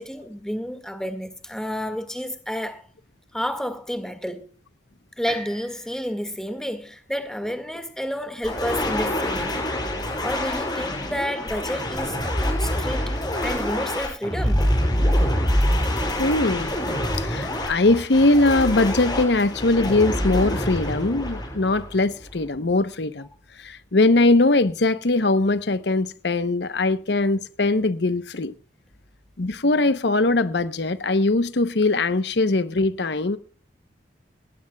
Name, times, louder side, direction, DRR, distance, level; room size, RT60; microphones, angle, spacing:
voice 1, 0.0-2.9 3.3-4.5 5.2-9.6 10.2-13.1 13.4-14.7, equal, 5° left, 1.8 m, -30 dB
sound 1, 5.3-9.2 9.8-9.9, right 2 dB, 55° right, 6.8 m, -44 dB
sound 2, 8.4-22.3, left 1 dB, 25° left, 5.8 m, -25 dB
voice 2, 16.2-16.7 17.2-23.3 23.6-28.5 29.4-33.4, left 2 dB, 70° left, 0.9 m, -21 dB
19.5 x 17.0 x 2.3 m
head